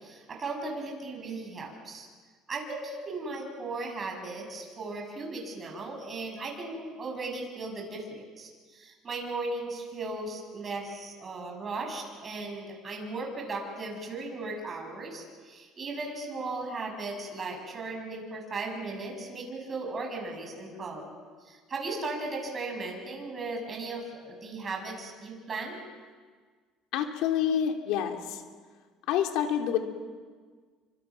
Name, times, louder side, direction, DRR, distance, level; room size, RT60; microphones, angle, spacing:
voice 1, 0.0-2.1 2.5-21.1 21.4-25.8, right 3 dB, 25° right, 2 dB, 6.8 m, -37 dB
voice 2, 26.9-28.4 29.1-29.8, left 9 dB, 75° left, 3 dB, 3.1 m, -27 dB
29.5 x 25.5 x 6.0 m, 1.5 s
cardioid pair, 145°, 0 cm